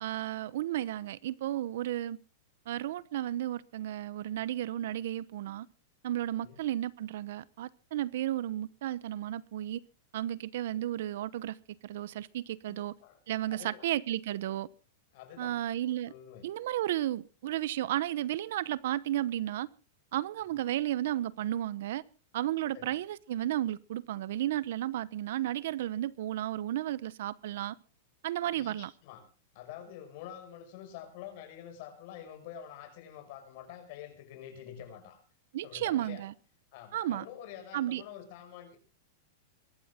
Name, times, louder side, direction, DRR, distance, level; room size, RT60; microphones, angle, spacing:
voice 1, 0.0-2.2 2.7-5.7 6.0-9.8 10.1-11.6 11.8-12.9 13.3-14.7 15.4-16.1 16.4-19.7 20.1-22.0 22.3-27.8 28.2-28.9 35.5-36.3 36.9-37.2 37.7-38.0, right 13 dB, 65° right, 0.9 m, -33 dB
voice 2, 12.7-13.2 13.5-13.9 15.1-15.6 16.1-16.5 22.7-23.0 28.4-28.7 29.0-29.3 29.5-35.2 35.6-36.2 36.7-38.8, left 10 dB, 50° left, 6.0 m, -47 dB
23.5 x 12.5 x 3.7 m
supercardioid pair, 165°, 0 cm